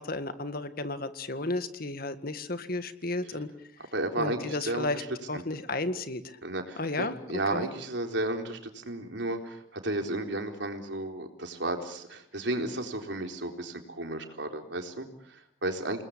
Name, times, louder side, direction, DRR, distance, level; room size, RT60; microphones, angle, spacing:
voice 1, 0.0-3.5 4.2-5.0 5.3-6.4 6.8-7.2 7.5-7.7, left 2 dB, 50° left, 10 dB, 1.9 m, -33 dB
voice 2, 3.9-5.1 5.3-5.4 6.4-16.0, right 2 dB, 65° right, 4 dB, 4.0 m, -33 dB
29.0 x 20.5 x 8.7 m, 0.72 s
head